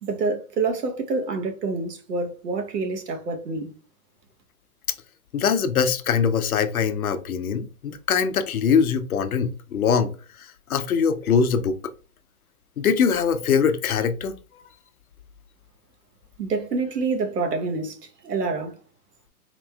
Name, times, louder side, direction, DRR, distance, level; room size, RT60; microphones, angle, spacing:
voice 1, 0.0-3.7 16.4-18.0 18.2-18.7, right 3 dB, 80° right, 1.1 m, -27 dB
voice 2, 5.3-10.1 10.7-11.8 12.8-14.3, left 6 dB, 65° left, 0.6 m, -22 dB
4.2 x 3.0 x 2.3 m
hypercardioid pair, 180°, 48 cm